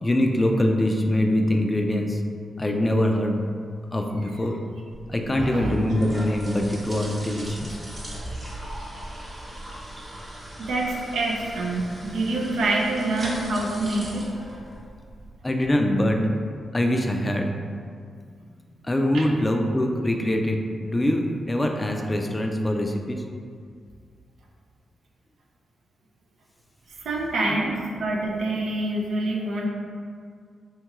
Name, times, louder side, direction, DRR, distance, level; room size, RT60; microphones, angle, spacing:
voice 1, 0.0-2.2 2.6-3.5 3.9-4.6 5.1-7.9 15.4-16.2 16.7-17.5 18.8-23.2, left 1 dB, 25° left, 3 dB, 0.3 m, -23 dB
sound 1, 4.9-15.3, right 1 dB, 30° right, 0.8 m, -39 dB
voice 2, 5.3-5.8 10.6-14.3 19.1-19.2 27.0-29.7, right 2 dB, 75° right, -2 dB, 0.4 m, -26 dB
2.8 x 2.3 x 2.9 m, 2.1 s
supercardioid pair, 45°, 0 cm